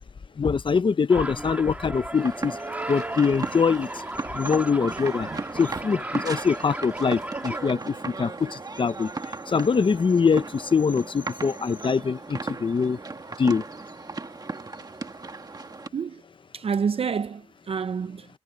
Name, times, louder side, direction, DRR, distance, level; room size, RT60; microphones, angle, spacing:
voice 1, 0.4-2.5 2.9-3.9 4.3-5.3 5.6-9.1 9.5-13.0 13.4-13.6, left 5 dB, 45° left, 0.6 m, -23 dB
sound 1, 1.1-7.7, right 1 dB, 15° right, 1.4 m, -36 dB
sound 2, 2.1-15.9, right 3 dB, 35° right, 1.6 m, -36 dB
voice 2, 16.5-18.3, right 6 dB, 55° right, 0.4 m, -28 dB
wide cardioid pair, 150°, 11 cm